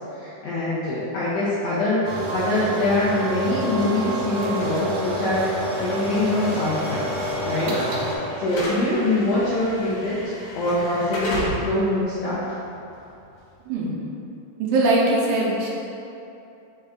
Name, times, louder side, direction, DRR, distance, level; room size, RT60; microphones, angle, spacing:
voice 1, 0.1-5.4 5.8-7.1 7.4-7.7 8.4-10.2 10.5-12.4, left 2 dB, 80° left, -8 dB, 1.5 m, -24 dB
sound 1, 2.0-8.2, equal, 75° right, 1.6 m, -27 dB
Slam / Alarm, 5.7-13.8, left 1 dB, 60° left, 1.6 m, -35 dB
voice 2, 14.6-15.7, right 2 dB, 90° right, -4 dB, 2.1 m, -21 dB
5.3 x 2.4 x 3.4 m, 2.8 s
omnidirectional pair, 3.5 m